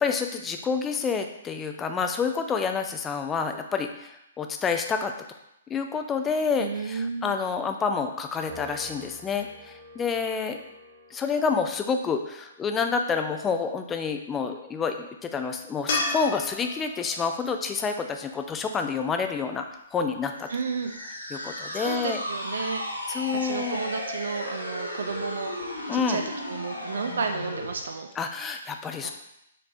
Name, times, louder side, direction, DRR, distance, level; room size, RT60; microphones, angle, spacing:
voice 1, 0.0-5.1 5.7-10.6 11.1-20.5 21.3-22.2 23.1-23.8 25.9-26.2 28.2-29.1, left 5 dB, 15° left, 5 dB, 0.4 m, -28 dB
voice 2, 6.6-7.3 20.5-20.9 21.7-22.8 23.3-25.5 25.9-28.1 29.0-29.1, right 5 dB, 60° right, 5 dB, 0.3 m, -32 dB
Piano, 8.5-15.0, left 1 dB, 15° right, 1.6 m, -49 dB
sound 1, 15.9-19.1 22.4-22.5, left 3 dB, 45° left, 0.9 m, -33 dB
sound 2, 20.4-27.8, equal, 90° left, 0.8 m, -35 dB
6.5 x 3.3 x 2.5 m, 0.83 s
figure-of-eight pair, 120°, 0 cm